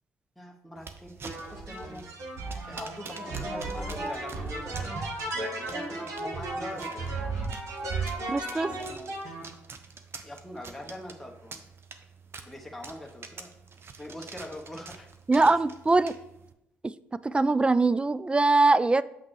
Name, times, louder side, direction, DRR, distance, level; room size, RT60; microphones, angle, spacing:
voice 1, 0.4-2.1 2.7-5.0 5.3-7.1 8.3-9.1 10.2-11.6 12.4-13.5 14.0-15.1 15.3-15.5, left 1 dB, 5° left, 0 dB, 1.0 m, -43 dB
sound 1, 0.8-16.5, right 5 dB, 45° right, 0.7 m, -48 dB
sound 2, 1.2-9.4, right 2 dB, 65° right, 1.3 m, -34 dB
voice 2, 8.3-8.7 15.3-16.1 16.8-16.9 17.2-19.0, right 3 dB, 20° right, 17 dB, 0.3 m, -22 dB
7.4 x 5.7 x 3.2 m, 0.86 s
hypercardioid pair, 50°, 6 cm